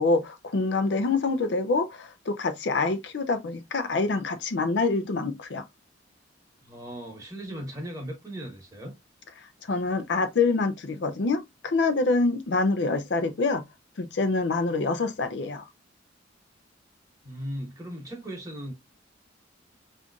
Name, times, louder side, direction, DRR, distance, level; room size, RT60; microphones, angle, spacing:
voice 1, 0.0-5.6 9.4-13.6 14.0-15.7, left 3 dB, 60° left, 0.5 m, -26 dB
voice 2, 6.6-8.9 17.2-18.7, equal, 20° right, 1.3 m, -37 dB
5.1 x 2.5 x 2.3 m
head